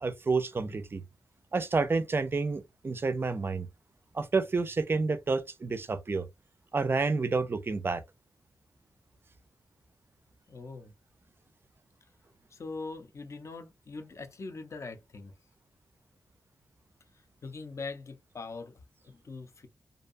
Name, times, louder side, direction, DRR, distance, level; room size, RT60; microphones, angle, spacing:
voice 1, 0.0-1.0 1.5-3.7 4.1-6.3 6.7-8.0, right 4 dB, 35° right, 0.4 m, -29 dB
voice 2, 10.5-10.9 12.5-15.3 17.4-19.7, left 3 dB, 45° left, 0.6 m, -42 dB
2.6 x 2.2 x 2.5 m
wide cardioid pair, 110°, 7 cm